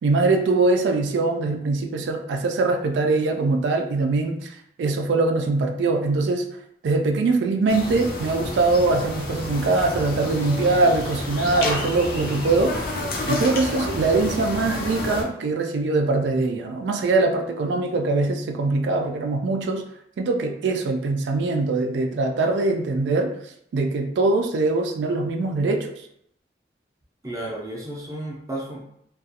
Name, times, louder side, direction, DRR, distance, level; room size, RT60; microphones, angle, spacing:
voice 1, 0.0-6.5 6.8-12.9 13.3-19.8 20.2-25.9, right 3 dB, 80° right, 4 dB, 0.3 m, -22 dB
sound 1, 7.7-15.2, left 2 dB, 55° left, 0.5 m, -30 dB
voice 2, 27.2-28.8, right 1 dB, 20° right, -3 dB, 0.5 m, -32 dB
2.4 x 2.2 x 2.7 m, 0.73 s
head